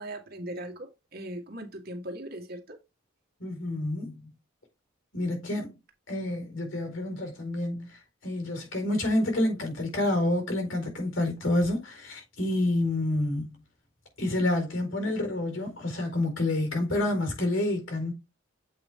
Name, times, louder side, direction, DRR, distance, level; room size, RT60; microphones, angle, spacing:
voice 1, 0.0-2.8, right 1 dB, 50° right, 1.6 m, -39 dB
voice 2, 3.4-4.3 5.1-5.7 6.1-13.5 14.2-18.1, left 1 dB, 75° left, 4.3 m, -28 dB
7.9 x 4.8 x 3.6 m
head